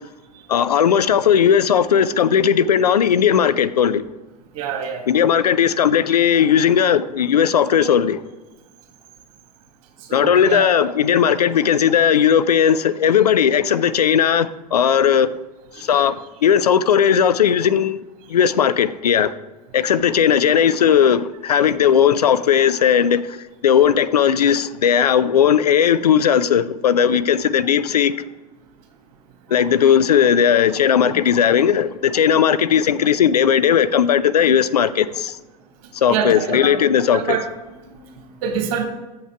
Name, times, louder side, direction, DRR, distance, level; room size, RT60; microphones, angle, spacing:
voice 1, 0.5-4.0 5.1-8.2 10.1-15.3 15.8-16.1 16.4-18.0 18.3-19.3 19.7-23.4 23.6-28.1 29.5-35.4 35.9-37.4, left 8 dB, 85° left, 0.4 m, -17 dB
voice 2, 4.5-5.1 10.1-10.8 15.7-16.1 31.0-31.2 36.1-36.8 37.1-37.5 37.8-38.8, right 7 dB, 60° right, 1.7 m, -26 dB
7.4 x 5.8 x 4.5 m
hypercardioid pair, 90°, 20 cm